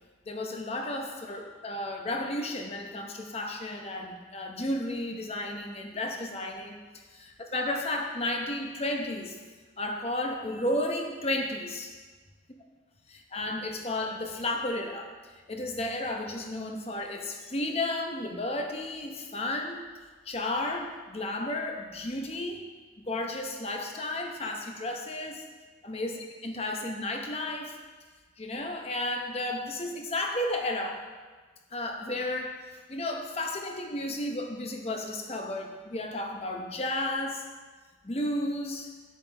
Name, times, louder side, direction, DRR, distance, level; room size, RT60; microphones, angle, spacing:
voice 1, 0.3-6.8 7.1-9.4 9.8-11.9 13.3-15.1 15.5-19.8 20.3-22.6 23.0-25.5 25.8-27.8 28.4-31.0 31.7-37.4 38.0-38.9, left 1 dB, 30° left, 3 dB, 0.8 m, -33 dB
9.9 x 7.5 x 3.4 m, 1.4 s
head